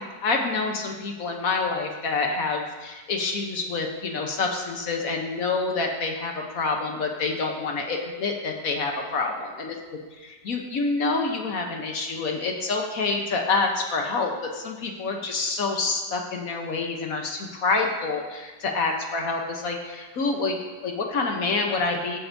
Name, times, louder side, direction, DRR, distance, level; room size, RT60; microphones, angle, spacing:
voice 1, 0.2-9.7 10.4-22.2, left 3 dB, 55° left, 2 dB, 1.2 m, -27 dB
14.0 x 7.9 x 2.7 m, 1.3 s
omnidirectional pair, 1.9 m